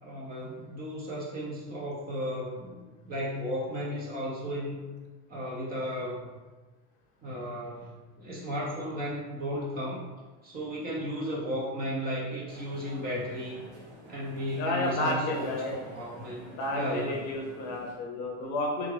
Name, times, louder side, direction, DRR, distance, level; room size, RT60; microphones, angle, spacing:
voice 1, 0.0-4.8 5.3-6.3 7.2-10.0 10.4-13.6 14.1-17.2, equal, 25° right, -4 dB, 0.5 m, -34 dB
sound 1, 12.5-17.9, equal, 50° right, 0.9 m, -49 dB
voice 2, 14.6-15.8 16.5-18.9, left 2 dB, 50° left, 0 dB, 0.7 m, -31 dB
3.5 x 2.4 x 3.2 m, 1.2 s
cardioid pair, 170°, 34 cm